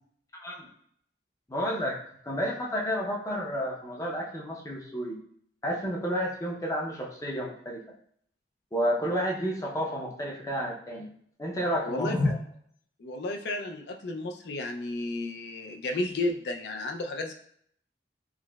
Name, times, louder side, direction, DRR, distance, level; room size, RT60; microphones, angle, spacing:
voice 1, 0.3-0.7 1.5-2.0 2.2-5.2 5.6-7.8 8.7-11.1 11.4-12.4, equal, 20° left, -2 dB, 0.5 m, -30 dB
voice 2, 11.9-12.2 13.0-17.3, left 2 dB, 70° left, 4 dB, 0.4 m, -32 dB
4.6 x 2.1 x 2.2 m, 0.65 s
head